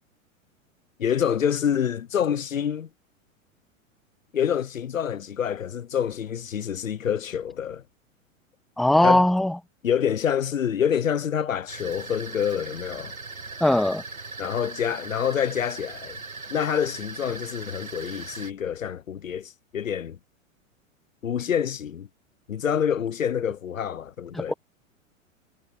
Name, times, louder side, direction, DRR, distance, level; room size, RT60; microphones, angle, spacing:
voice 1, 1.0-2.9 4.3-7.8 9.0-9.3 9.8-13.1 14.4-16.2 16.5-20.2 21.2-22.1 22.5-24.5, left 8 dB, 75° left, 1.0 m, -27 dB
voice 2, 8.8-9.5 13.6-14.0 24.3-24.5, left 1 dB, ahead, 0.9 m, -19 dB
sound 1, 11.7-18.5, right 4 dB, 85° right, 1.8 m, -39 dB
figure-of-eight pair, 100°, 40 cm